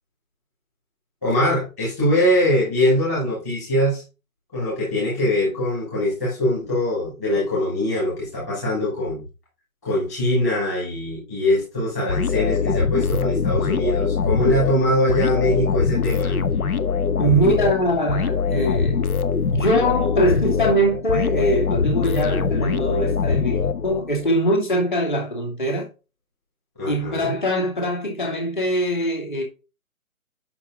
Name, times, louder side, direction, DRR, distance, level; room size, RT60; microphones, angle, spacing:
voice 1, 1.2-4.0 4.5-9.2 9.8-16.4 26.8-27.4, left 1 dB, 10° left, 2.1 m, -22 dB
sound 1, 12.1-24.3, left 5 dB, 85° left, 1.1 m, -23 dB
voice 2, 17.2-19.0 19.5-25.9 26.9-29.4, right 1 dB, 35° left, 2.8 m, -22 dB
8.7 x 5.6 x 3.7 m
hypercardioid pair, 175°, 43 cm